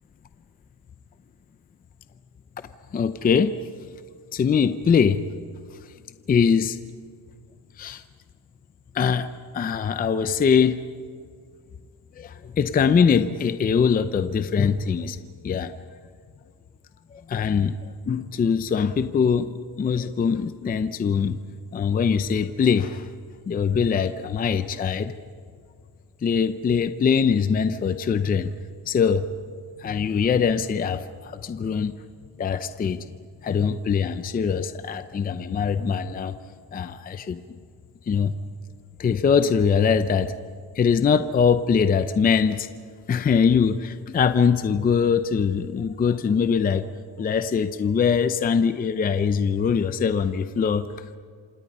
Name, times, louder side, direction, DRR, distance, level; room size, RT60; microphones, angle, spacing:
voice 1, 2.9-3.5 4.3-5.2 6.3-6.8 7.8-8.0 8.9-9.3 9.5-10.8 12.2-15.2 15.4-15.7 17.1-17.7 18.1-21.4 21.7-23.1 23.5-25.1 26.2-28.5 28.9-29.2 29.8-31.9 32.4-33.0 33.4-36.3 36.7-37.4 38.1-38.3 39.0-40.3 40.8-42.7 43.1-46.9 47.2-50.9, left 6 dB, 20° left, 11 dB, 0.6 m, -22 dB
27.5 x 26.5 x 5.5 m, 2.1 s
cardioid pair, 165°, 43 cm